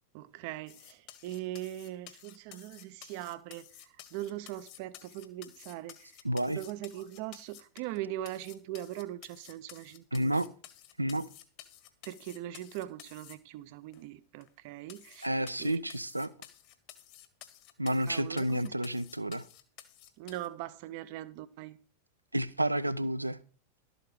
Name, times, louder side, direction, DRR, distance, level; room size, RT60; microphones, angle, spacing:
voice 1, 0.1-6.1 6.5-10.4 12.0-15.3 15.6-15.8 18.1-18.7 20.2-21.8, right 14 dB, 45° right, 0.6 m, -41 dB
sound 1, 0.7-8.0 8.2-13.3 13.9-14.0 14.4-14.5 14.9-20.5, left 12 dB, 45° left, 1.4 m, -53 dB
voice 2, 6.2-6.6 10.1-10.5 11.0-11.3 15.2-16.3 17.8-19.4 22.3-23.4, right 1 dB, 85° right, 0.6 m, -30 dB
12.5 x 8.0 x 4.8 m
figure-of-eight pair, 90°, 0 cm